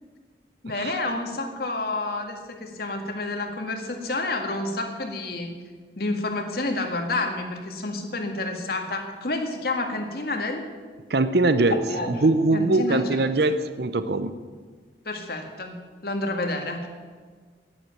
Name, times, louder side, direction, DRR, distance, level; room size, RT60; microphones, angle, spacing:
voice 1, 0.6-5.5 6.0-10.7 11.9-13.2 13.5-13.6 15.1-16.9, left 2 dB, 55° left, 3 dB, 1.8 m, -29 dB
voice 2, 11.1-14.3, right 2 dB, 60° right, 12 dB, 0.7 m, -22 dB
11.0 x 9.8 x 9.0 m, 1.5 s
head